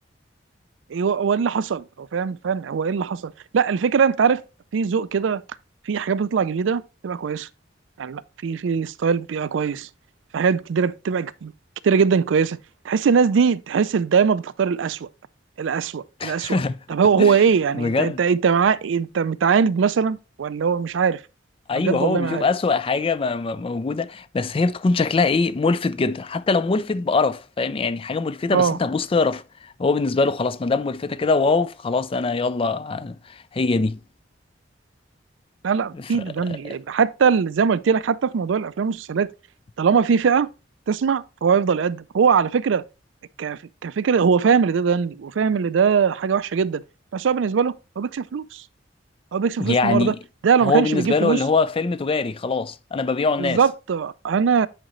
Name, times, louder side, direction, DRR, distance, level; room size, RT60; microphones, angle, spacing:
voice 1, 0.9-4.4 4.7-5.4 5.9-7.5 8.0-9.9 10.3-11.5 11.8-12.6 12.8-15.1 15.6-16.6 16.9-21.2 21.7-22.4 28.5-28.8 35.6-39.3 39.8-40.5 40.9-42.8 43.4-46.8 47.1-48.6 49.3-50.1 50.4-51.4 53.4-54.7, right 6 dB, 85° right, 0.4 m, -21 dB
voice 2, 16.2-16.8 17.2-17.4 17.7-18.2 21.7-29.4 29.8-34.0 35.9-36.8 49.6-50.2 50.6-53.6, left 4 dB, 30° left, 0.4 m, -23 dB
8.8 x 5.1 x 3.0 m
head